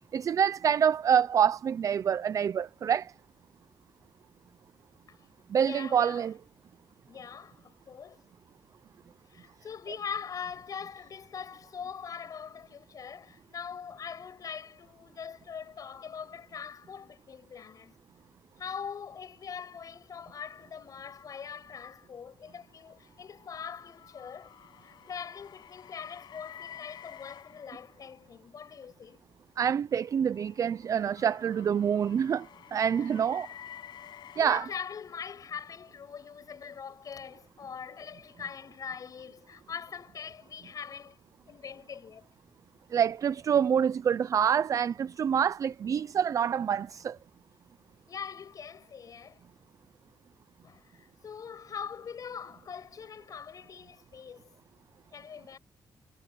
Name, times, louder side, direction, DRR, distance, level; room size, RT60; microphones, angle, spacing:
voice 1, 0.1-3.1 5.5-6.3 29.6-33.5 34.4-34.6 42.9-47.2, right 8 dB, 45° right, 0.4 m, -26 dB
voice 2, 5.6-6.3 7.1-8.2 9.3-17.9 18.6-24.5 24.8-29.2 32.9-33.1 34.4-41.2 41.5-42.3 48.1-49.4 50.6-54.5 55.1-55.6, left 7 dB, 50° left, 7.0 m, -42 dB
sound 1, 22.8-28.5 29.8-35.2, left 10 dB, 70° left, 6.9 m, -51 dB
cardioid pair, 130°, 8 cm